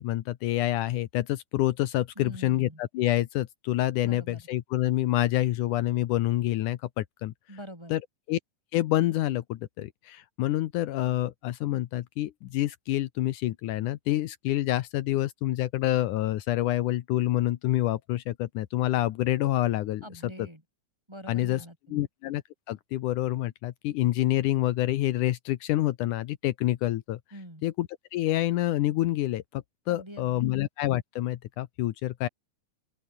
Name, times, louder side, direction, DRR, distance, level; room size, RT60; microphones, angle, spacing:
voice 1, 0.0-7.3 7.9-8.0 8.3-8.4 8.7-20.0 21.3-21.6 21.9-22.4 22.7-27.2 27.6-32.3, left 15 dB, 75° left, 2.4 m, -27 dB
voice 2, 2.2-2.8 4.0-4.5 7.5-7.9 20.0-20.6 21.1-22.1 27.3-27.6 29.9-30.5, equal, 10° right, 4.1 m, -44 dB
open air
omnidirectional pair, 3.7 m